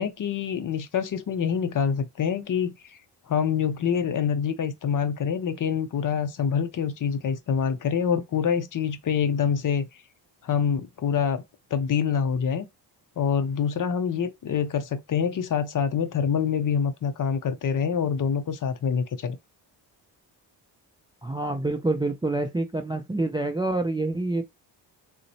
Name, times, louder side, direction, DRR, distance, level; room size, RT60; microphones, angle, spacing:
voice 1, 0.0-2.7 3.3-9.9 10.4-11.4 11.7-12.7 13.2-19.4, left 7 dB, 45° left, 0.6 m, -26 dB
voice 2, 21.2-24.4, right 2 dB, 10° right, 0.4 m, -27 dB
3.8 x 2.1 x 2.6 m
cardioid pair, 70°, 47 cm